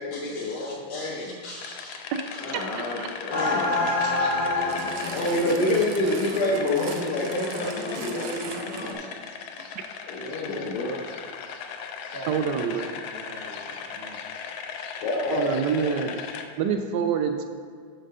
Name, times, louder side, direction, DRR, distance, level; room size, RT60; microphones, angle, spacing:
voice 1, 0.0-1.9 2.4-4.5 5.1-8.8 10.1-11.0 15.0-16.1, left 1 dB, 65° left, -4 dB, 1.4 m, -28 dB
sound 1, 1.5-16.4, left 6 dB, 85° left, 1.4 m, -38 dB
voice 2, 2.7-3.1 5.6-5.8 12.3-12.9 15.3-16.2 16.6-17.4, right 7 dB, 75° right, 6 dB, 1.0 m, -26 dB
sound 2, 3.3-8.9, left 2 dB, 40° left, 1.1 m, -29 dB
sound 3, 4.7-9.1 9.9-10.0, right 6 dB, 90° right, 1.5 m, -41 dB
voice 3, 12.1-14.2, right 2 dB, 50° right, -2 dB, 0.7 m, -44 dB
6.5 x 4.5 x 6.5 m, 2.1 s
omnidirectional pair, 2.1 m